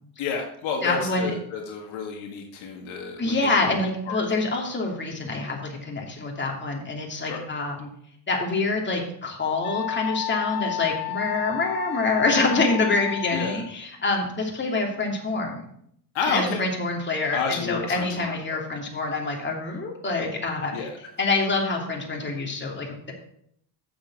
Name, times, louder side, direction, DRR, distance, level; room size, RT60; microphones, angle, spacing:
voice 1, 0.2-4.2 7.3-7.4 13.3-13.6 16.1-16.6 17.3-18.4 20.7-20.9, left 5 dB, 70° left, 2 dB, 1.9 m, -30 dB
voice 2, 0.8-1.3 3.2-7.9 8.3-15.6 16.3-20.8 21.2-23.1, left 3 dB, 20° left, 0 dB, 2.8 m, -26 dB
Wind instrument woodwind instrument, 9.6-13.7, left 14 dB, 45° left, 0.8 m, -32 dB
7.5 x 7.2 x 5.9 m, 0.68 s
supercardioid pair, 80°, 49 cm